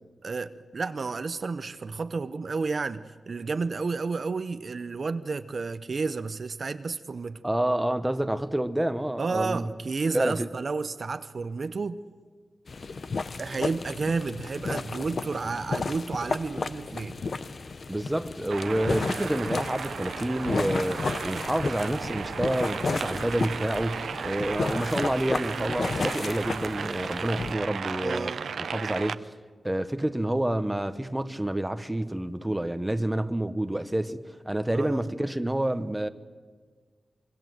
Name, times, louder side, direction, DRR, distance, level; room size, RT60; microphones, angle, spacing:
voice 1, 0.2-7.4 9.2-12.0 13.4-17.2 28.0-28.5 34.7-35.0, right 4 dB, 50° right, 0.7 m, -31 dB
voice 2, 7.4-9.7 10.1-10.5 17.9-29.3 29.6-36.1, right 1 dB, 10° right, 1.0 m, -28 dB
sound 1, 12.7-27.5, left 4 dB, 50° left, 0.9 m, -33 dB
sound 2, 18.5-29.2, right 6 dB, 85° right, 0.7 m, -35 dB
25.0 x 23.5 x 7.9 m
wide cardioid pair, 120°, 0 cm